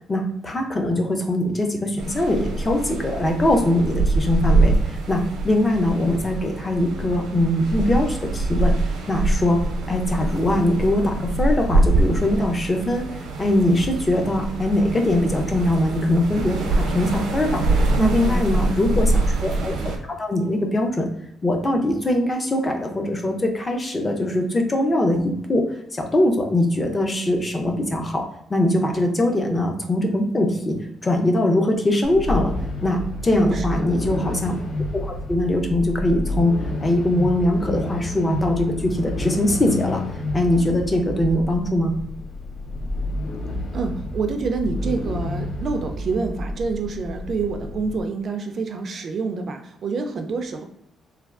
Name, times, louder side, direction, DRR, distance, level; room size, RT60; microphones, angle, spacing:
voice 1, 0.1-9.6 9.9-19.8 20.2-21.1 21.4-28.2 28.5-30.8 31.0-32.5 32.8-34.6 34.9-36.5 36.8-40.0 40.3-42.0, left 1 dB, 20° left, 2 dB, 0.5 m, -22 dB
sound 1, 2.0-20.0, right 2 dB, 90° right, 0.6 m, -24 dB
voice 2, 18.0-18.7 33.3-34.0 43.7-50.6, right 4 dB, 40° right, 5 dB, 0.3 m, -27 dB
sound 2, 32.0-48.0, left 1 dB, 60° left, 0.7 m, -30 dB
3.3 x 2.2 x 2.4 m, 0.76 s
cardioid pair, 145°, 0 cm